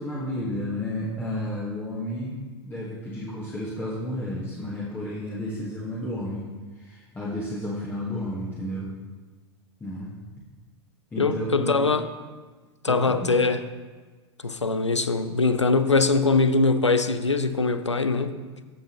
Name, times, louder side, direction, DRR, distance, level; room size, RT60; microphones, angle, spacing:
voice 1, 0.0-6.4 6.8-8.9 9.8-10.1 11.1-11.9 12.9-13.3, left 1 dB, 15° left, -7 dB, 1.6 m, -32 dB
voice 2, 11.2-12.1 12.8-13.7 14.4-18.4, left 3 dB, 90° left, 12 dB, 0.5 m, -22 dB
14.5 x 5.5 x 3.1 m, 1.4 s
figure-of-eight pair, 90°, 15 cm